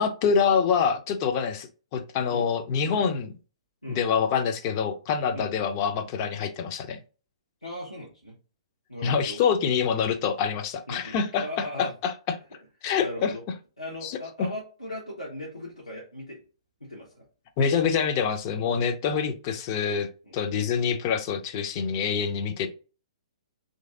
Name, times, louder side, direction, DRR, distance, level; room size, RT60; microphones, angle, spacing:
voice 1, 0.0-3.3 3.9-7.0 9.0-12.1 12.8-13.3 14.0-14.2 17.6-22.7, left 6 dB, 30° left, 0.4 m, -26 dB
voice 2, 7.6-8.4 8.9-9.4 10.9-12.0 13.0-13.4 13.8-16.4 16.8-17.2 20.3-20.4, left 1 dB, 85° left, 0.9 m, -38 dB
3.1 x 2.6 x 2.3 m
figure-of-eight pair, 120°, 3 cm